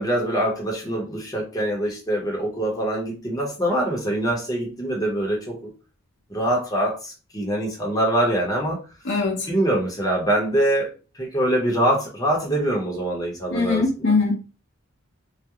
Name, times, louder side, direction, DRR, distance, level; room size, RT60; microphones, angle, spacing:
voice 1, 0.0-5.6 6.3-8.8 9.5-14.1, right 1 dB, 15° left, 0.7 m, -24 dB
voice 2, 9.1-9.5 13.5-14.4, left 3 dB, 55° left, 0.6 m, -21 dB
2.3 x 2.0 x 2.9 m
head